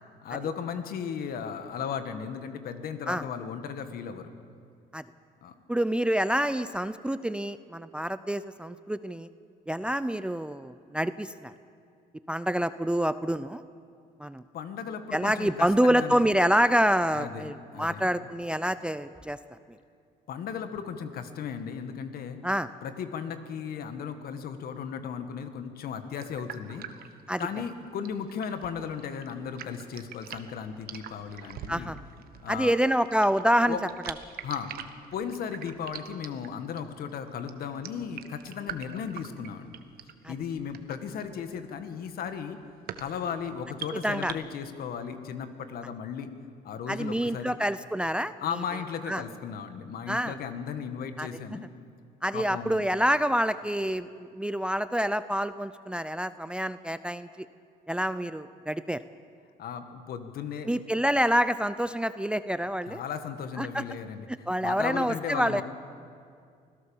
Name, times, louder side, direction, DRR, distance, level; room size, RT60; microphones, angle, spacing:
voice 1, 0.2-4.3 5.4-5.5 14.5-16.2 17.1-18.1 20.3-22.4 22.8-26.9 27.4-31.9 32.4-32.7 33.7-33.8 34.4-34.8 35.1-39.8 40.3-42.6 43.0-46.3 46.6-47.6 48.4-51.7 52.3-52.8 59.6-60.7 62.9-64.3 64.6-65.6, left 7 dB, 65° left, 8 dB, 1.9 m, -36 dB
voice 2, 5.7-9.3 9.7-11.5 12.3-13.6 14.2-14.4 15.1-19.4 22.4-22.7 27.3-27.4 31.7-32.0 32.5-33.8 40.2-40.3 43.9-44.3 46.9-48.3 49.1-49.2 50.1-50.4 51.2-51.6 52.2-57.5 57.9-59.0 60.7-63.0 63.6-63.8 64.5-65.6, equal, 5° right, 13 dB, 0.5 m, -27 dB
sound 1, 26.1-44.3, right 9 dB, 65° right, 1.3 m, -44 dB
25.0 x 16.5 x 7.3 m, 2.3 s
cardioid pair, 110°, 17 cm